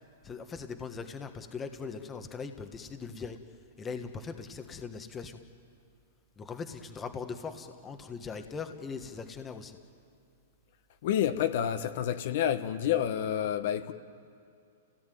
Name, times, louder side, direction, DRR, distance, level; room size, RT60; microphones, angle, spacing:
voice 1, 0.2-3.4 3.8-5.4 6.4-9.8, left 5 dB, 15° left, 7 dB, 1.4 m, -40 dB
voice 2, 11.0-13.9, left 10 dB, 55° left, 8 dB, 1.3 m, -29 dB
29.0 x 17.5 x 9.3 m, 2.4 s
hypercardioid pair, 155°, 0 cm